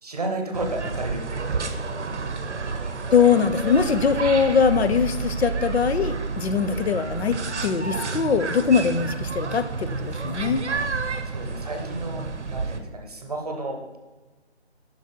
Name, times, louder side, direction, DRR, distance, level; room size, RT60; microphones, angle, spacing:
voice 1, 0.0-2.2 10.7-10.9 11.2-12.2 12.5-14.0, right 2 dB, 35° right, 3 dB, 0.8 m, -33 dB
sound 1, 0.5-12.8, right 4 dB, 90° right, 0.8 m, -30 dB
voice 2, 3.1-10.6, left 6 dB, 65° left, 10 dB, 0.5 m, -22 dB
6.0 x 4.0 x 4.4 m, 1.2 s
figure-of-eight pair, 165°, 34 cm